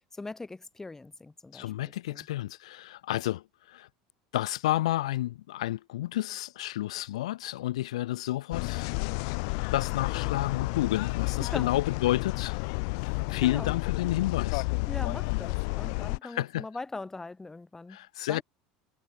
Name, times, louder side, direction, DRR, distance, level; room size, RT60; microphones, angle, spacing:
voice 1, 0.2-1.6 2.1-2.3 11.4-11.7 13.4-13.7 14.9-18.0 18.3-18.4, left 3 dB, 15° left, 3.1 m, -40 dB
voice 2, 1.5-3.9 4.3-8.9 9.7-12.6 13.3-14.7 16.2-16.6 17.9-18.4, left 15 dB, 85° left, 1.1 m, -30 dB
sound 1, 8.5-16.2, left 33 dB, 70° left, 0.6 m, -31 dB
supercardioid pair, 100°, 3 cm